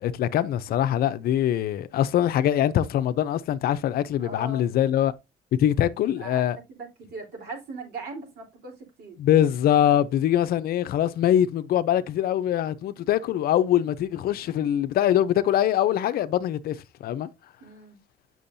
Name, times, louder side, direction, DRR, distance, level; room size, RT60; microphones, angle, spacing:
voice 1, 0.0-5.1 5.6-6.6 9.2-17.3, left 11 dB, 65° left, 0.6 m, -23 dB
voice 2, 4.2-4.8 5.7-5.8 6.2-9.2 17.6-18.0, right 3 dB, 65° right, 3.7 m, -40 dB
8.5 x 6.2 x 2.7 m
cardioid pair, 110°, 17 cm